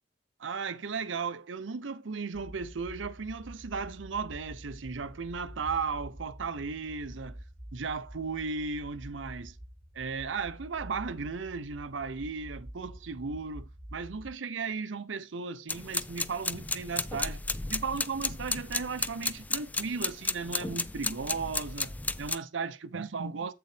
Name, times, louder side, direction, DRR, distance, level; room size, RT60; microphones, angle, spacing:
voice 1, 0.4-7.4 7.7-9.6 9.9-17.4 17.7-23.5, right 5 dB, 80° right, 0.7 m, -36 dB
sound 1, 2.3-14.3, equal, 35° right, 1.7 m, -47 dB
sound 2, 15.7-22.4, left 3 dB, 10° left, 0.3 m, -34 dB
7.8 x 6.7 x 3.3 m
head